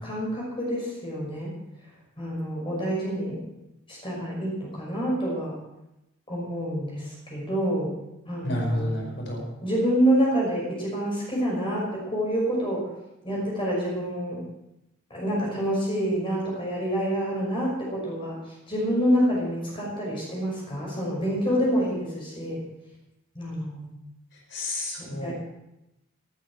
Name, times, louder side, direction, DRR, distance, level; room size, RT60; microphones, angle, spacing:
voice 1, 0.0-1.5 2.2-3.4 3.9-5.6 6.3-7.9 8.2-9.1 9.6-12.8 13.2-14.4 15.1-18.4 18.7-22.6 23.3-23.9 25.0-25.3, equal, 30° left, -4 dB, 5.7 m, -27 dB
voice 2, 8.4-9.4 24.5-25.3, left 1 dB, 65° left, 0 dB, 5.0 m, -30 dB
18.5 x 13.0 x 4.6 m, 0.90 s
head